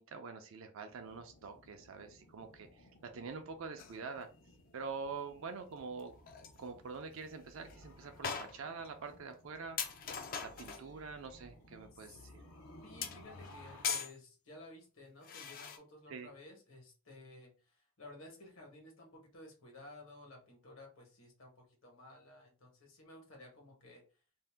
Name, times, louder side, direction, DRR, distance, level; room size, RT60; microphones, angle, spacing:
voice 1, 0.0-4.3 4.7-6.1 6.6-9.8 10.4-12.3 16.1-16.3, right 4 dB, 65° right, 6 dB, 0.4 m, -45 dB
sound 1, 0.9-13.9, left 1 dB, 85° left, 0.7 m, -58 dB
sound 2, 3.8-4.0 6.0-6.1 6.3-6.6 7.1-7.2 7.7-7.8 8.2-8.9 9.3-9.4 9.8-10.9 13.0-14.2 15.2-15.8, left 6 dB, 40° left, 0.3 m, -40 dB
voice 2, 12.8-24.0, left 2 dB, 70° left, 1 dB, 1.1 m, -55 dB
2.6 x 2.1 x 3.3 m, 0.35 s
head